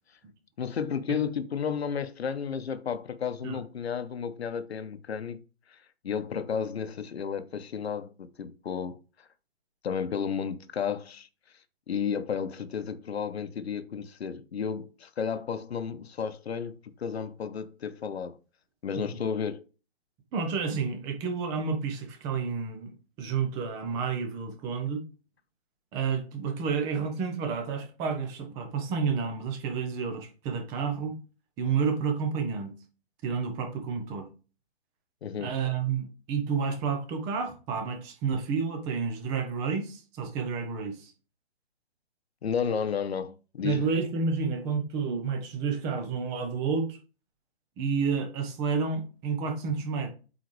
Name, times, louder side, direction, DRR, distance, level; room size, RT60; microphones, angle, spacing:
voice 1, 0.6-5.4 5.7-5.8 6.0-9.0 9.8-11.3 11.9-18.4 18.8-19.6 35.2-35.5 42.4-43.9, left 7 dB, 75° left, 0.9 m, -32 dB
voice 2, 20.3-22.9 23.2-25.0 25.9-31.2 31.6-32.7 33.2-34.3 35.4-41.1 43.6-47.0 47.8-50.1, right 5 dB, 10° right, 0.6 m, -30 dB
8.0 x 4.1 x 3.2 m
hypercardioid pair, 155°, 32 cm